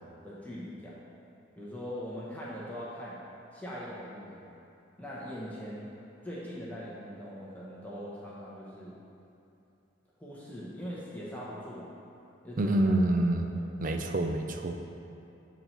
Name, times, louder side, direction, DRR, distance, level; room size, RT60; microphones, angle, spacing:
voice 1, 0.2-1.0 1.6-3.2 3.5-4.5 5.0-5.9 6.2-9.0 10.2-11.9 12.4-12.9 13.5-13.7, equal, 10° left, -7 dB, 0.8 m, -41 dB
voice 2, 12.6-14.8, right 1 dB, 45° right, 5 dB, 0.4 m, -27 dB
7.1 x 4.1 x 4.4 m, 2.8 s
head